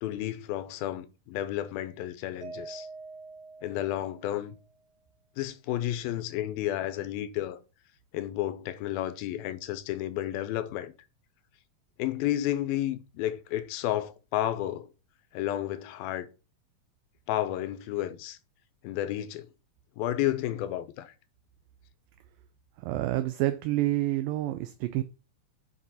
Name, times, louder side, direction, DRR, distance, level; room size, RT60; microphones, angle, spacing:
voice 1, 0.0-2.9 3.6-4.6 5.4-7.6 8.1-10.9 12.0-14.9 15.3-16.3 17.3-18.4 18.8-19.5 20.0-21.1, left 13 dB, 90° left, 2.6 m, -31 dB
Mallet percussion, 2.4-4.7, right 4 dB, 55° right, 2.2 m, -45 dB
voice 2, 22.8-25.0, right 15 dB, 80° right, 2.2 m, -28 dB
8.3 x 4.7 x 4.1 m
omnidirectional pair, 4.2 m